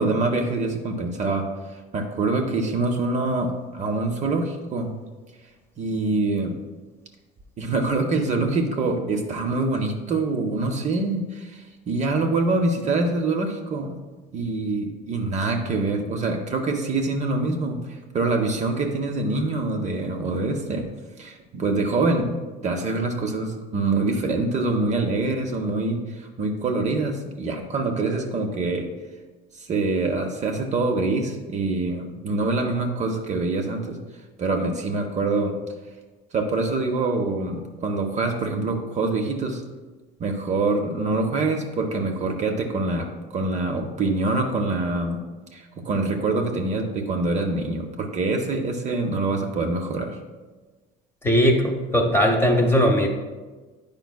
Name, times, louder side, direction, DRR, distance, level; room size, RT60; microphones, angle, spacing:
voice 1, 0.0-4.9 5.8-6.6 7.6-14.0 14.3-20.9 21.2-22.3 22.6-28.9 29.5-34.0 34.4-35.6 36.3-39.6 40.2-45.2 45.5-50.2, right 3 dB, 35° right, 3 dB, 0.6 m, -25 dB
voice 2, 51.2-53.1, equal, 10° left, 2 dB, 0.8 m, -19 dB
9.1 x 5.2 x 2.2 m, 1.3 s
cardioid pair, 130°, 21 cm